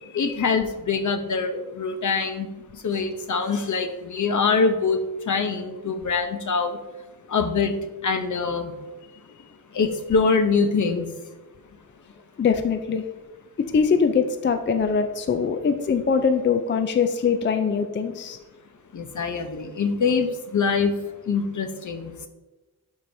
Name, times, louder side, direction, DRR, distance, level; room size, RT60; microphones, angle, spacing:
voice 1, 0.1-6.8 7.3-8.7 9.7-11.1 18.9-21.0 21.2-22.1, left 4 dB, 60° left, 7 dB, 0.8 m, -24 dB
voice 2, 12.4-13.1 13.6-18.4, left 6 dB, 35° left, 8 dB, 0.4 m, -22 dB
11.5 x 4.8 x 2.7 m, 1.1 s
wide cardioid pair, 135°, 33 cm